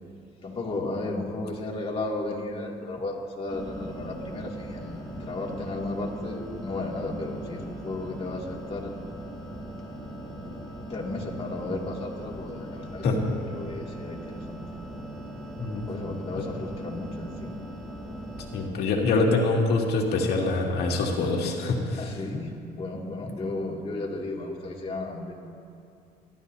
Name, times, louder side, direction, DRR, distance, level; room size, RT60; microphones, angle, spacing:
voice 1, 0.4-8.9 10.1-10.6 10.9-14.6 15.9-17.6 22.0-25.3, left 2 dB, 35° left, -2 dB, 2.4 m, -34 dB
sound 1, 3.5-18.7, right 1 dB, ahead, 3.5 m, -40 dB
voice 2, 18.5-22.0, left 3 dB, 70° left, -1 dB, 2.3 m, -25 dB
27.5 x 12.5 x 2.8 m, 2.5 s
cardioid pair, 110°, 17 cm